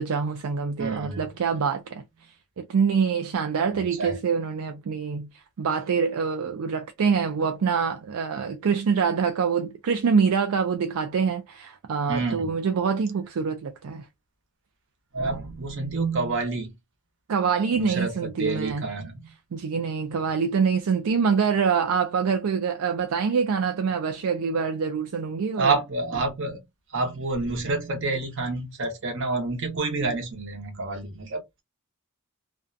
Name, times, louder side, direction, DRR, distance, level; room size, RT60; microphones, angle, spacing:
voice 1, 0.0-2.0 2.6-14.1 17.3-18.9 19.5-25.8, right 6 dB, 70° right, 0.4 m, -25 dB
voice 2, 0.8-1.3 3.6-4.2 12.1-12.5 15.1-16.7 17.7-18.1 18.4-19.2 25.6-26.6 26.9-31.6, right 3 dB, 55° right, 0.9 m, -28 dB
2.5 x 2.2 x 2.5 m
head